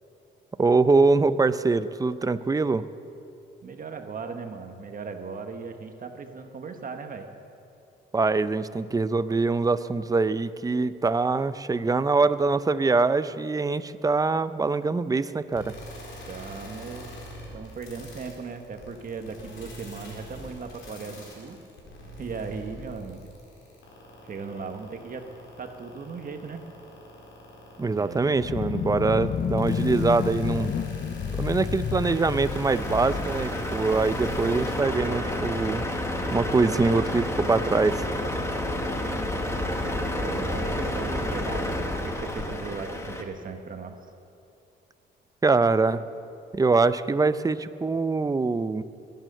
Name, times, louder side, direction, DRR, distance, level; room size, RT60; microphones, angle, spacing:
voice 1, 0.6-2.8 8.1-15.7 27.8-30.7 31.4-35.9 36.3-38.0 45.4-46.0 46.5-48.8, right 3 dB, 20° right, 13 dB, 0.6 m, -23 dB
voice 2, 3.6-7.3 16.3-17.1 17.5-21.6 22.2-23.4 24.2-25.3 25.6-26.6 27.9-28.5 38.6-39.2 40.1-43.9, right 5 dB, 45° right, 5 dB, 1.3 m, -38 dB
sound 1, 15.5-34.8, equal, 80° left, 4.4 m, -41 dB
sound 2, 28.3-34.3, left 7 dB, 45° left, 0.7 m, -30 dB
Truck, 32.0-43.2, left 1 dB, 15° left, 1.7 m, -30 dB
22.0 x 9.3 x 6.6 m, 2.6 s
cardioid pair, 90°, 20 cm